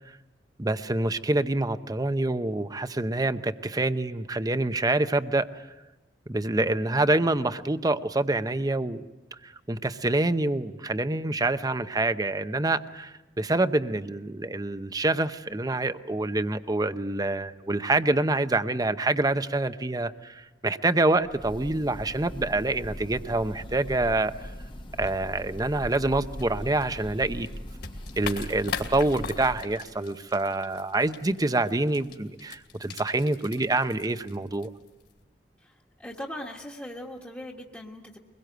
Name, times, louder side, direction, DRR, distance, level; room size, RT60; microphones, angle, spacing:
voice 1, 0.6-5.5 6.3-9.0 9.4-24.3 25.0-27.5 28.2-34.7, right 2 dB, 20° right, 11 dB, 0.7 m, -26 dB
Breathing / Bird, 21.2-29.8, equal, 30° left, 1.1 m, -40 dB
sound 1, 25.0-35.2, left 6 dB, 65° left, 2.5 m, -42 dB
voice 2, 35.6-38.2, left 1 dB, 10° left, -2 dB, 1.5 m, -40 dB
23.5 x 21.5 x 7.9 m, 1.1 s
head